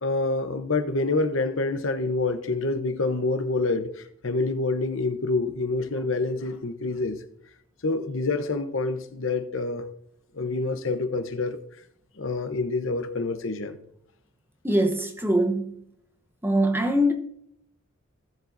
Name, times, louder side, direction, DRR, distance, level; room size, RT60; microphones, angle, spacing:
voice 1, 0.0-7.2 7.8-9.8 10.3-11.6 12.2-13.8, left 3 dB, 65° left, 0.9 m, -27 dB
voice 2, 14.6-15.8 16.4-17.1, equal, 10° right, 0.9 m, -23 dB
17.5 x 7.5 x 2.6 m
head